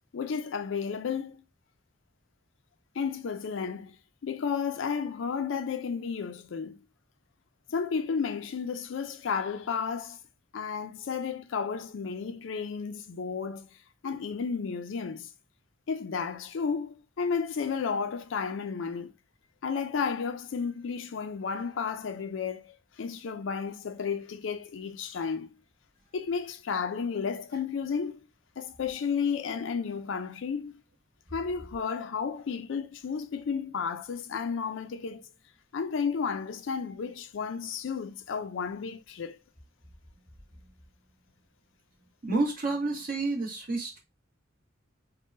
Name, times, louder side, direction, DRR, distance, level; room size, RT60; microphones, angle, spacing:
voice 1, 0.1-1.4 3.0-4.0 4.2-6.8 7.7-10.2 10.5-13.7 14.0-15.3 15.9-19.1 19.6-25.5 26.1-28.2 28.6-30.8 31.3-35.3 35.7-39.4, left 6 dB, 70° left, 0.4 m, -32 dB
voice 2, 42.2-44.0, right 3 dB, 45° right, 1.1 m, -29 dB
3.6 x 2.1 x 2.5 m
head